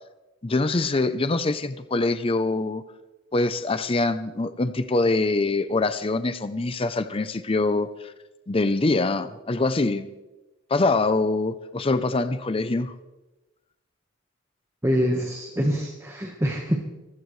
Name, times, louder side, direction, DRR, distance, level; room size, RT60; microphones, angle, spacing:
voice 1, 0.4-2.8 3.3-8.1 8.5-10.1 10.7-12.9, left 2 dB, 25° left, 12 dB, 0.6 m, -24 dB
voice 2, 14.8-16.8, equal, 15° right, 0 dB, 1.3 m, -25 dB
24.0 x 16.0 x 3.2 m, 1.1 s
head